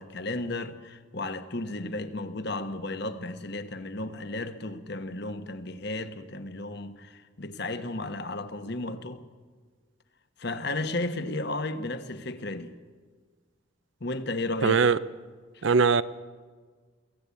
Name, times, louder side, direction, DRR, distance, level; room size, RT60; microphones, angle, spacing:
voice 1, 0.0-9.2 10.4-12.7 14.0-14.8 15.5-15.6, left 2 dB, 50° left, 1.3 m, -34 dB
voice 2, 14.6-15.0 15.6-16.0, right 5 dB, 60° right, 0.6 m, -20 dB
23.0 x 17.0 x 8.4 m
head